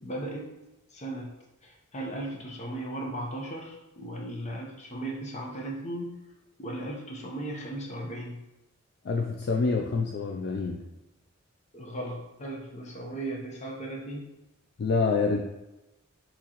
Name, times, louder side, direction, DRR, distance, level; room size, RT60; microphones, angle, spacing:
voice 1, 0.0-0.5 0.9-1.3 1.6-6.2 6.6-8.4 11.7-14.2, right 1 dB, 35° left, 0 dB, 0.8 m, -36 dB
voice 2, 9.0-10.8 14.8-15.4, left 4 dB, 50° left, 1 dB, 0.3 m, -27 dB
6.0 x 3.0 x 2.9 m, 0.96 s
head